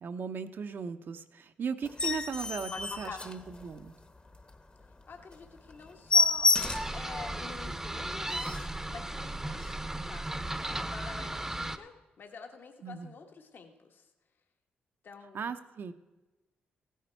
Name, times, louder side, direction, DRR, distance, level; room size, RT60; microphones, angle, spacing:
voice 1, 0.0-4.0 12.8-13.1 15.3-15.9, right 6 dB, 60° right, 8 dB, 0.7 m, -37 dB
sound 1, 1.8-4.0 4.4-4.5 4.9-5.0 5.3-5.4 5.7-7.0 7.5-7.6 8.0-8.1 8.3-8.8 9.5-9.7, left 4 dB, 30° left, 1.0 m, -29 dB
voice 2, 2.7-3.2 5.1-6.5 6.9-8.5 8.9-14.1 15.0-15.5, left 5 dB, 60° left, 4 dB, 1.3 m, -47 dB
sound 2, 6.5-11.8, right 1 dB, 10° right, 0.7 m, -36 dB
15.5 x 9.4 x 4.5 m, 1.1 s
cardioid pair, 65°, 4 cm